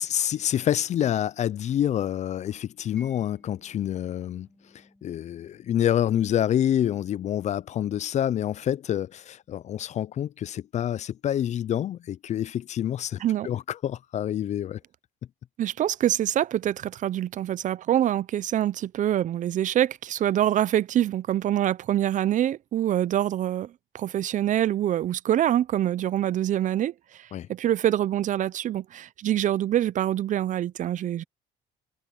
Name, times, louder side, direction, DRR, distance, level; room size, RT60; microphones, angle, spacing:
voice 1, 0.0-4.5 4.7-14.8 27.3-27.5, left 10 dB, 45° left, 0.4 m, -27 dB
Mallet percussion, 3.0-9.7, left 1 dB, 5° left, 5.6 m, -61 dB
voice 2, 15.6-31.2, right 11 dB, 50° right, 0.5 m, -25 dB
cardioid pair, 110°, 17 cm